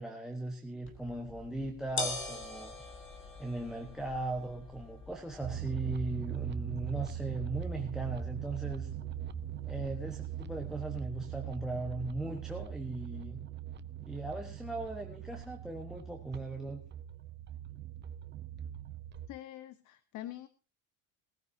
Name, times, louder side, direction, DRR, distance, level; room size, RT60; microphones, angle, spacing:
voice 1, 0.0-2.7 3.4-8.9 9.6-13.4 14.0-16.8, right 2 dB, ahead, 5 dB, 1.3 m, -38 dB
sound 1, 0.8-10.9, left 3 dB, 30° left, 2.8 m, -45 dB
sound 2, 5.4-19.3, right 10 dB, 25° right, 0.8 m, -41 dB
voice 2, 19.3-20.5, left 13 dB, 45° left, 12 dB, 0.9 m, -45 dB
19.5 x 14.5 x 2.8 m, 0.34 s
cardioid pair, 150°, 41 cm